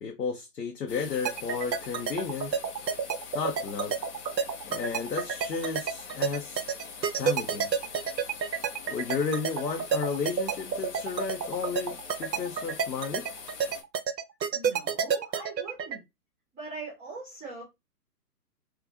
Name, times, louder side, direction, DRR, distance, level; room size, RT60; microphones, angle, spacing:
voice 1, 0.0-2.7 3.3-3.9 4.6-6.6 7.2-7.7 8.9-13.3, left 5 dB, 80° left, 0.8 m, -33 dB
sound 1, 0.9-13.8, left 5 dB, 45° left, 0.7 m, -44 dB
sound 2, 1.3-16.0, right 7 dB, 90° right, 0.6 m, -29 dB
voice 2, 14.5-16.0 16.5-17.6, right 3 dB, 15° right, 1.5 m, -41 dB
3.6 x 2.3 x 2.5 m
figure-of-eight pair, 135°, 49 cm